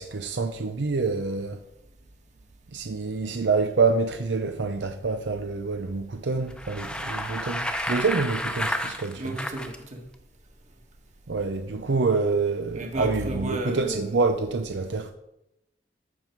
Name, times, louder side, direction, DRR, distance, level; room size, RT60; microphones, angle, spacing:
voice 1, 0.0-1.6 2.7-9.4 11.3-15.1, right 4 dB, 80° right, 0.6 m, -27 dB
Bicycle, 6.5-9.8, left 1 dB, 5° left, 0.9 m, -31 dB
voice 2, 9.2-10.0 12.7-14.2, right 1 dB, 45° right, 1.8 m, -33 dB
14.5 x 5.8 x 4.6 m
head